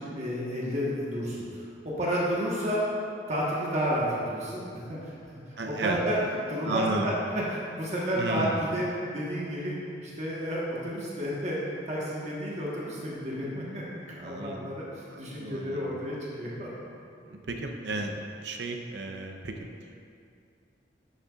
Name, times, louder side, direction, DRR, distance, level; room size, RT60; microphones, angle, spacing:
voice 1, 0.0-2.8 3.3-4.6 4.9-5.2 5.6-6.2 6.5-8.9 9.1-11.6 11.9-16.7 17.2-17.4, equal, 40° right, -6 dB, 1.3 m, -31 dB
voice 2, 5.6-6.0 6.6-7.1 8.2-8.6 14.2-14.7 15.1-15.9 17.3-19.7, right 2 dB, 70° right, 3 dB, 0.7 m, -33 dB
11.0 x 6.6 x 2.4 m, 2.4 s
head